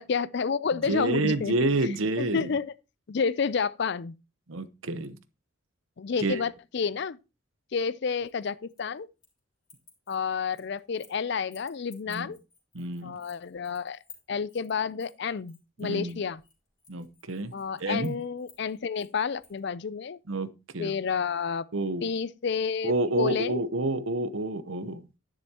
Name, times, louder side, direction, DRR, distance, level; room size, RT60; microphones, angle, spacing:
voice 1, 0.0-1.5 1.8-2.7 3.1-4.2 6.0-7.2 7.7-9.1 10.1-12.4 13.0-14.0 14.3-16.4 17.5-20.2 20.8-21.7 22.0-23.6, left 5 dB, 55° left, 0.4 m, -30 dB
voice 2, 0.9-2.5 4.5-5.2 6.2-6.4 12.1-12.3 12.7-13.2 15.8-16.2 16.9-17.5 17.8-18.1 20.3-20.5 20.7-21.0 21.7-22.0 22.8-25.0, right 2 dB, 70° right, 0.9 m, -28 dB
sound 1, 8.2-9.4 9.6-11.2 11.5-19.6, left 5 dB, 20° left, 2.8 m, -56 dB
10.5 x 10.0 x 2.9 m
head